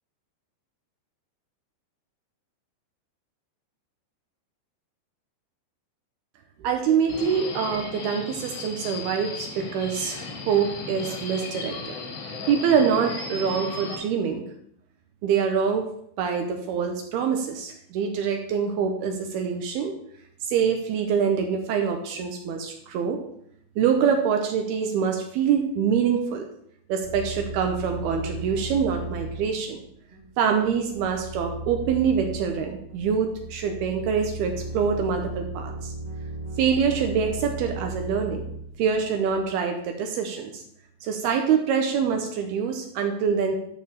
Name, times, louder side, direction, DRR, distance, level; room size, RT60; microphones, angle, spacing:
voice 1, 6.6-12.0 12.5-14.4 15.2-15.9 16.2-19.9 20.4-23.2 23.8-26.5 26.9-29.8 30.4-35.9 36.6-38.5 38.8-40.6 41.0-43.6, right 7 dB, 75° right, 4 dB, 2.5 m, -25 dB
Subway metro underground, 7.1-13.9, left 4 dB, 50° left, 2.1 m, -36 dB
sound 1, 27.0-39.5, right 2 dB, 35° right, 0.6 m, -36 dB
11.5 x 4.6 x 6.9 m, 0.69 s
omnidirectional pair, 5.3 m